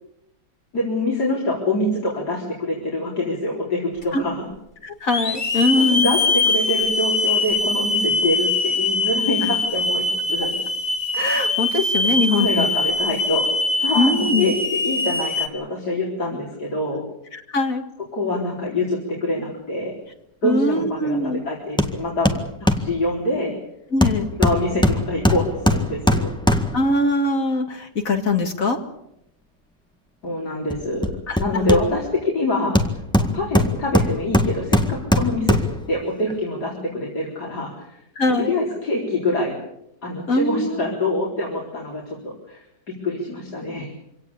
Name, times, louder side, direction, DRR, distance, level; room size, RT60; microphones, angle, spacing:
voice 1, 0.7-4.4 5.8-10.6 12.0-13.5 13.8-17.0 18.1-19.9 20.4-22.3 22.8-23.5 24.4-26.3 30.2-31.1 31.4-32.8 33.2-35.6 35.9-38.0 38.3-39.6 40.0-43.9, left 1 dB, 85° left, -3 dB, 4.8 m, -25 dB
Hiss / Alarm, 4.0-4.1 5.1-15.5, left 3 dB, 30° left, 1.8 m, -22 dB
voice 2, 4.8-6.2 11.1-12.7 13.9-14.5 17.3-17.8 20.4-21.4 23.9-24.3 26.7-28.8 31.3-31.4 38.2-38.5 40.3-40.9, left 2 dB, 60° left, 6 dB, 2.6 m, -22 dB
Hammer, 21.8-22.0 22.2-22.9 24.0-26.9 30.7-32.2 32.7-35.8 36.3-36.4, left 1 dB, 5° left, 1.7 m, -20 dB
25.5 x 17.5 x 8.5 m, 0.82 s
omnidirectional pair, 1.7 m